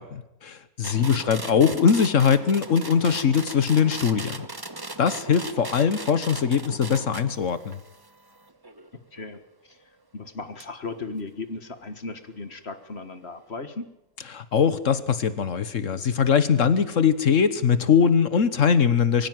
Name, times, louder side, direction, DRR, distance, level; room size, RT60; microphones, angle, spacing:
voice 1, 0.0-4.5 5.0-7.8 14.3-19.3, left 7 dB, 75° left, 14 dB, 1.5 m, -21 dB
sound 1, 0.8-9.4 10.6-10.7, right 2 dB, 20° right, 1.2 m, -38 dB
voice 2, 10.1-13.9, left 3 dB, 55° left, 10 dB, 1.9 m, -36 dB
24.0 x 16.0 x 9.3 m, 0.86 s
omnidirectional pair, 1.3 m